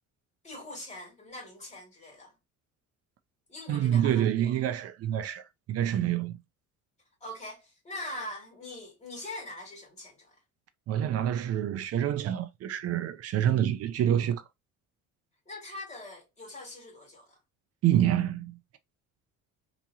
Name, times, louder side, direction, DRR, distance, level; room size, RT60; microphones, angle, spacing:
voice 1, 0.4-2.3 3.5-4.6 7.2-10.4 15.5-17.4, left 1 dB, 20° left, 2.4 m, -42 dB
voice 2, 3.7-6.4 10.9-14.4 17.8-18.6, right 11 dB, 50° right, 0.5 m, -27 dB
3.5 x 3.0 x 2.7 m
cardioid pair, 130°, 31 cm